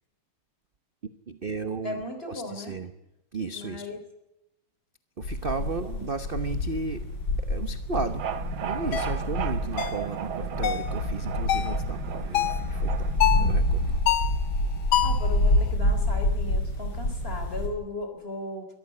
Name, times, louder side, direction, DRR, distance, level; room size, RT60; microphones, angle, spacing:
voice 1, 1.3-2.0 2.3-2.9 3.3-3.9 5.2-7.0 7.5-8.2 8.6-13.1 13.5-13.9, right 4 dB, 35° right, 10 dB, 0.9 m, -34 dB
voice 2, 1.8-2.8 3.5-4.0 5.8-6.1 15.0-18.7, left 2 dB, 30° left, 6 dB, 4.0 m, -36 dB
sound 1, 5.2-17.7, left 1 dB, 60° left, 4.9 m, -27 dB
sound 2, 7.9-14.0, right 9 dB, 85° right, 1.9 m, -36 dB
sound 3, 8.9-9.1 9.8-10.0 10.6-10.9 11.5-11.8 12.3-12.7 13.2-13.5 14.1-14.4 14.9-15.3, left 11 dB, 80° left, 1.9 m, -25 dB
23.0 x 14.5 x 8.5 m, 0.90 s
omnidirectional pair, 2.2 m